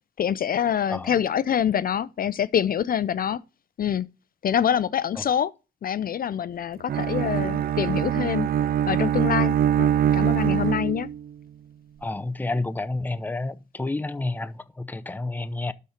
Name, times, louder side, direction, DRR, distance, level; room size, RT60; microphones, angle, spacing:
voice 1, 0.2-3.4 3.8-4.1 4.4-5.5 5.8-8.5 8.9-11.1, left 9 dB, 45° left, 0.5 m, -25 dB
Bowed string instrument, 6.9-11.3, right 10 dB, 50° right, 0.4 m, -23 dB
voice 2, 12.0-15.7, left 2 dB, 10° left, 0.7 m, -30 dB
12.0 x 4.3 x 5.0 m
cardioid pair, 90°, 20 cm